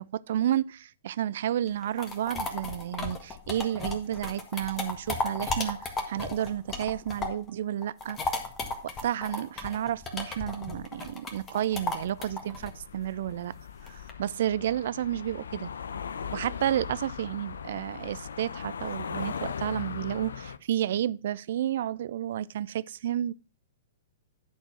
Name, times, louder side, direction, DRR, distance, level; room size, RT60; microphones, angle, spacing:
voice 1, 0.0-8.2 8.8-13.5 13.9-15.7 16.3-23.3, right 11 dB, 60° right, 0.4 m, -31 dB
sound 1, 1.7-7.5 7.8-14.1, left 3 dB, 20° left, 1.7 m, -35 dB
sound 2, 12.0-20.6, left 6 dB, 75° left, 0.6 m, -39 dB
10.5 x 4.4 x 5.8 m
figure-of-eight pair, 115°, 0 cm